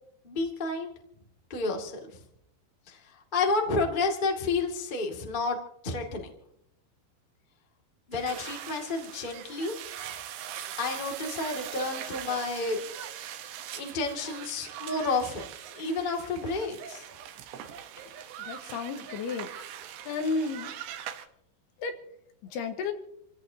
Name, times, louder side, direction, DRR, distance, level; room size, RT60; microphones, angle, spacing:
voice 1, 0.2-0.9 1.5-2.2 2.9-3.0 3.3-5.6 5.8-6.3 8.1-9.7 10.8-12.8 13.8-17.1, left 3 dB, 35° left, 1 dB, 0.7 m, -30 dB
sound 1, 8.1-21.3, right 10 dB, 75° right, 3.2 m, -41 dB
voice 2, 18.5-19.5 20.1-20.7 21.8-22.0 22.4-22.9, left 4 dB, 70° left, 6 dB, 3.1 m, -32 dB
28.5 x 16.5 x 2.8 m, 0.74 s
omnidirectional pair, 5.1 m